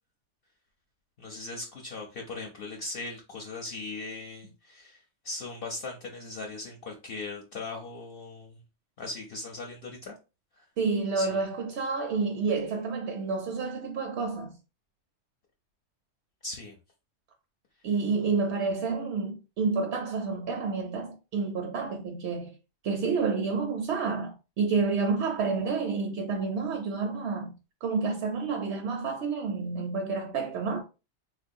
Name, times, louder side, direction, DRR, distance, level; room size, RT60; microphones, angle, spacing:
voice 1, 1.2-8.6 9.0-10.1 10.5-10.6 11.1-11.4 16.4-16.8, left 3 dB, 55° left, 0.8 m, -39 dB
voice 2, 10.8-14.6 17.8-22.6 22.8-27.5 27.8-30.8, right 4 dB, 70° right, 0.8 m, -29 dB
3.7 x 2.4 x 2.5 m
omnidirectional pair, 1.2 m